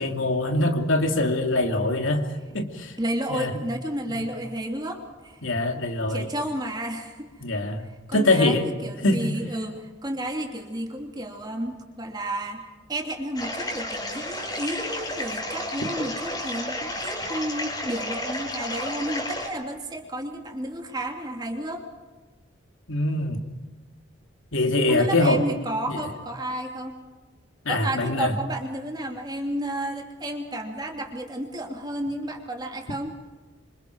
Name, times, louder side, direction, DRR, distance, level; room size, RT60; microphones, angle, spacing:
voice 1, 0.0-2.2 2.5-2.9 3.3-3.5 4.1-4.2 5.4-6.3 7.4-8.7 9.0-9.3 22.9-23.4 24.5-25.4 25.9-26.0 27.6-28.3, left 2 dB, 80° left, 3 dB, 2.8 m, -23 dB
voice 2, 3.0-5.4 6.1-7.3 8.1-21.8 24.9-27.0 27.7-33.1, right 1 dB, 20° right, 2 dB, 2.9 m, -32 dB
sound 1, 13.3-19.5, left 1 dB, 20° left, 4.6 m, -32 dB
26.5 x 26.5 x 4.7 m, 1.3 s
head